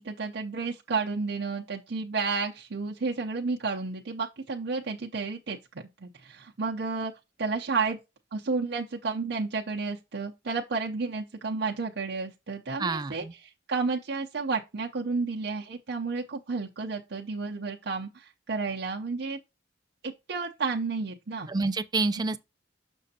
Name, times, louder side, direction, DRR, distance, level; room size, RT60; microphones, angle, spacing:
voice 1, 0.0-7.1 7.4-8.0 8.3-19.4 20.0-21.5, right 4 dB, 60° right, 0.7 m, -31 dB
voice 2, 12.8-13.3 21.5-22.4, right 3 dB, 20° right, 0.4 m, -28 dB
6.6 x 6.2 x 2.8 m
head